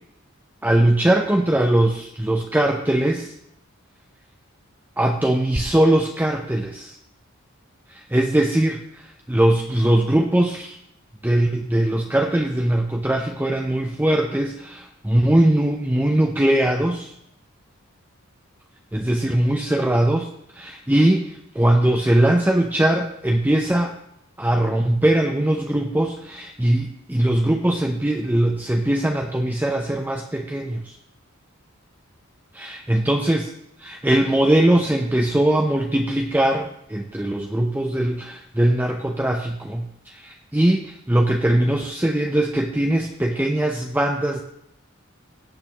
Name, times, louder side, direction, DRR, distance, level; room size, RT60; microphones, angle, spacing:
voice 1, 0.6-3.3 5.0-7.0 7.9-10.8 11.2-17.1 18.9-20.3 20.5-24.0 24.4-31.0 32.5-33.4 33.8-44.4, right 1 dB, 10° right, 2 dB, 0.6 m, -21 dB
17.0 x 8.0 x 3.0 m, 0.76 s
head